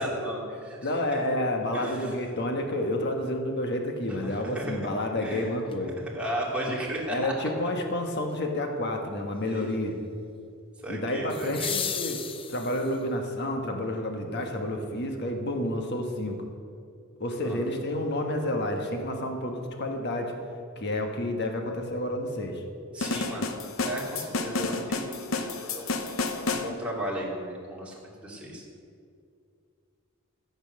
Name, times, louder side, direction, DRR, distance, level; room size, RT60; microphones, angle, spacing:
voice 1, 0.0-0.8 1.1-1.2 1.7-2.1 4.1-4.8 5.2-5.5 6.1-7.3 9.5-9.6 10.8-11.7 17.4-17.6 22.9-23.5 23.8-25.9 26.5-27.9 28.2-28.6, right 1 dB, 5° right, -5 dB, 2.6 m, -35 dB
voice 2, 0.8-5.9 6.7-6.8 7.1-9.9 10.9-12.2 12.5-16.4 17.2-20.4 20.8-22.6, left 1 dB, 55° left, 3 dB, 1.4 m, -30 dB
sound 1, 5.7-5.8 11.3-13.1 15.3-15.4, left 7 dB, 25° left, 0.5 m, -34 dB
sound 2, 23.0-26.7, left 3 dB, 70° left, 0.9 m, -30 dB
14.0 x 8.1 x 6.5 m, 2.4 s
head